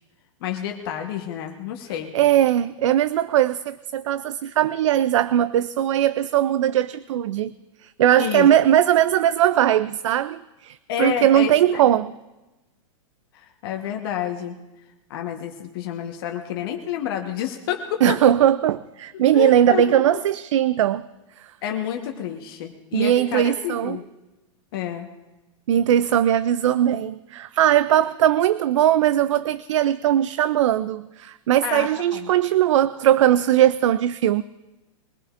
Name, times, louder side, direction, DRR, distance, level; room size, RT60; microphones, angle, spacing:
voice 1, 0.4-2.2 8.2-8.5 10.9-11.9 13.3-14.6 15.1-18.2 19.1-20.2 21.6-24.0 24.7-25.1 31.6-32.3, left 10 dB, 45° left, 3 dB, 1.2 m, -29 dB
voice 2, 2.1-7.5 7.8-12.1 18.0-21.0 22.9-24.0 25.7-34.4, right 11 dB, 65° right, 16 dB, 0.4 m, -19 dB
22.5 x 16.5 x 2.5 m, 1.0 s
supercardioid pair, 165°, 17 cm